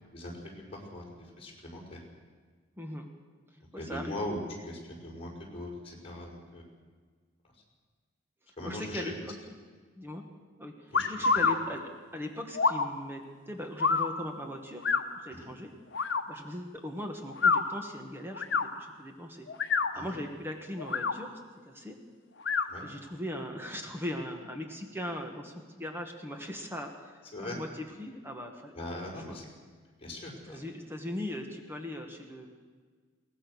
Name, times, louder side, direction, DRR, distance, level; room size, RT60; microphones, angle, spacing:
voice 1, 0.1-2.0 3.8-6.6 8.6-9.1 10.9-11.4 15.3-15.5 19.9-20.2 22.7-22.8 27.3-27.6 28.7-29.5 30.0-30.6, left 1 dB, 30° left, -2 dB, 5.3 m, -40 dB
voice 2, 2.8-3.1 3.7-4.2 8.6-9.5 10.0-10.2 10.6-11.8 12.1-14.9 15.2-15.7 16.3-19.5 19.9-21.4 21.6-21.9 22.8-28.7 29.3-29.4 30.5-32.5, left 1 dB, 10° right, 3 dB, 1.8 m, -39 dB
sound 1, 10.9-11.6 12.5-12.9 13.8-14.1 14.8-15.0 15.9-16.2 17.3-17.6 18.4-18.7 19.5-19.9 20.8-21.1 22.4-22.7, left 5 dB, 60° left, 1.2 m, -26 dB
22.0 x 18.0 x 6.5 m, 1.5 s
head